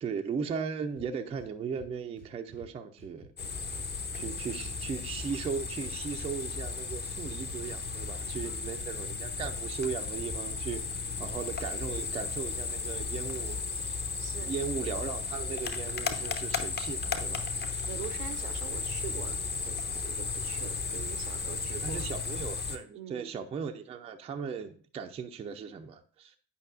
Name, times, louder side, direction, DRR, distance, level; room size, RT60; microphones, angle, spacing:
voice 1, 0.0-3.3 4.1-14.1 14.4-17.9 21.7-26.4, right 6 dB, 15° right, 0.4 m, -37 dB
sound 1, 1.0-1.5 1.8-2.7 3.0-4.7 5.0-5.9 6.2-8.0 8.2-9.2 9.5-11.2 11.5-12.4 12.7-13.9, left 1 dB, 80° left, 2.0 m, -51 dB
sound 2, 3.4-22.8, left 4 dB, 20° left, 0.6 m, -35 dB
voice 2, 4.1-4.6 8.4-8.8 14.2-14.5 17.5-22.1 22.9-23.3, right 10 dB, 70° right, 0.6 m, -45 dB
8.3 x 5.2 x 2.4 m
figure-of-eight pair, 60°, 48 cm